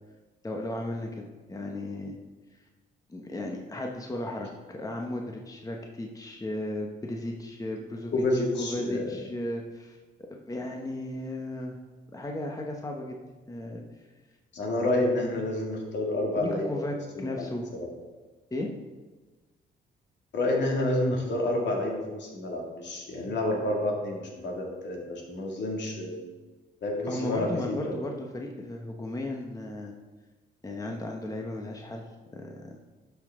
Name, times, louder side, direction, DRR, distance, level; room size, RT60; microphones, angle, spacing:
voice 1, 0.4-1.2 1.5-2.1 3.1-8.1 8.6-10.0 10.3-11.8 12.1-13.2 13.5-13.8 16.4-17.7 18.5-18.7 27.1-29.9 30.6-32.1 32.3-32.8, left 1 dB, 15° left, 1 dB, 1.0 m, -35 dB
voice 2, 8.1-9.2 14.5-16.8 17.1-17.5 17.7-17.9 20.3-26.2 26.8-28.0, left 1 dB, 65° left, -1 dB, 2.2 m, -29 dB
11.5 x 5.8 x 3.7 m, 1.3 s
cardioid pair, 90°, 20 cm